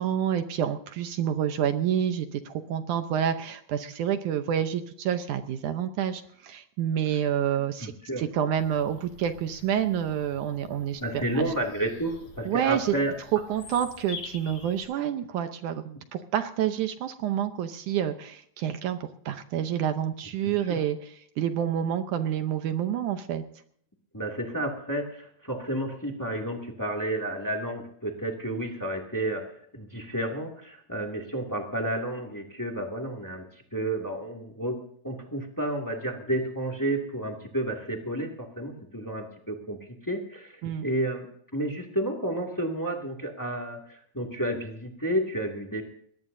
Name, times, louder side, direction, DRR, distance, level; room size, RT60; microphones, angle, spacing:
voice 1, 0.0-7.9 8.2-11.5 12.5-12.9 13.5-23.4 40.6-40.8, right 9 dB, 70° right, 8 dB, 2.0 m, -28 dB
voice 2, 7.8-8.2 11.0-13.1 20.4-20.8 24.1-33.5 33.7-34.8 35.0-39.8 40.0-41.3 41.5-45.8, right 1 dB, 10° left, 1 dB, 1.2 m, -31 dB
Bird vocalization bird call bird song, 8.6-14.8, left 5 dB, 60° left, 7.3 m, -47 dB
21.5 x 18.5 x 2.7 m, 0.64 s
omnidirectional pair, 4.4 m